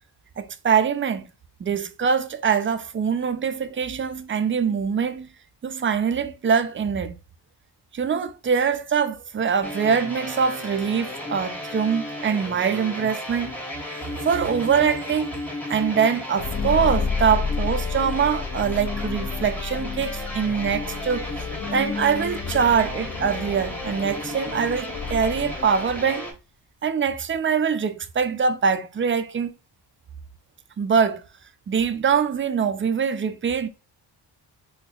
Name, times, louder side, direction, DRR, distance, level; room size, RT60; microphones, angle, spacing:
voice 1, 0.4-1.3 1.6-5.3 5.6-7.2 7.9-13.5 14.1-15.3 15.7-21.3 21.7-26.3 26.8-29.5 30.8-31.2 31.7-33.7, right 6 dB, 30° right, 0.4 m, -23 dB
sound 1, 9.6-26.3, left 1 dB, 5° left, 0.9 m, -34 dB
sound 2, 16.4-26.0, left 5 dB, 45° left, 0.6 m, -31 dB
4.2 x 2.7 x 2.3 m
cardioid pair, 80°, 44 cm